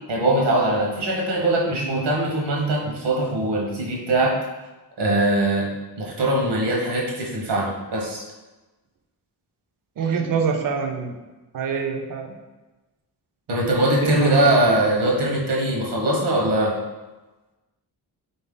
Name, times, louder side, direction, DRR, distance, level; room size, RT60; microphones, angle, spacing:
voice 1, 0.1-4.4 5.0-5.7 6.0-8.2 13.5-16.8, right 1 dB, 80° right, -2 dB, 1.0 m, -21 dB
voice 2, 10.0-11.1 11.5-12.3 14.0-14.5, right 6 dB, 55° right, 4 dB, 0.5 m, -25 dB
4.0 x 2.7 x 3.6 m, 1.1 s
wide cardioid pair, 155°, 41 cm